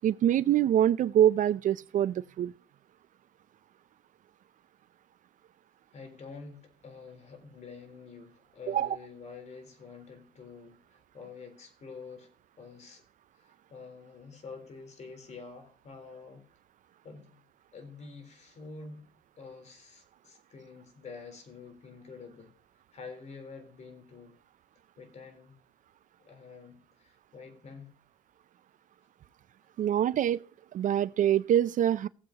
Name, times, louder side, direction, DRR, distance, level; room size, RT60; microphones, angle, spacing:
voice 1, 0.0-2.5 8.7-9.0 29.8-30.4 30.7-32.1, right 10 dB, 50° right, 0.5 m, -25 dB
voice 2, 5.9-12.3 12.6-13.0 13.3-16.5 17.0-17.4 17.7-19.1 19.4-22.5 22.9-24.4 25.0-25.6 26.2-27.9, left 4 dB, 40° left, 3.7 m, -47 dB
17.0 x 7.8 x 2.8 m
cardioid pair, 110°, 17 cm